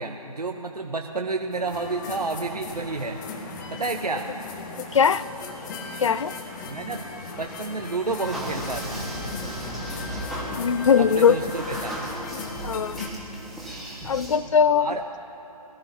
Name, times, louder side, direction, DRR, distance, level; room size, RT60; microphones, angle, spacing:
voice 1, 0.0-3.2 3.7-4.3 6.6-7.0 7.3-9.1 11.0-11.9 14.8-15.0, right 3 dB, 80° right, 2 dB, 0.9 m, -30 dB
sound 1, 1.5-13.1, left 3 dB, 30° left, 1.4 m, -37 dB
voice 2, 4.9-5.3 6.0-6.3 10.6-11.5 12.3-13.0 14.0-14.9, left 7 dB, 55° left, 17 dB, 0.4 m, -20 dB
sound 2, 8.2-14.4, right 1 dB, ahead, 1.6 m, -36 dB
22.0 x 13.0 x 2.9 m, 3.0 s
figure-of-eight pair, 135°, 20 cm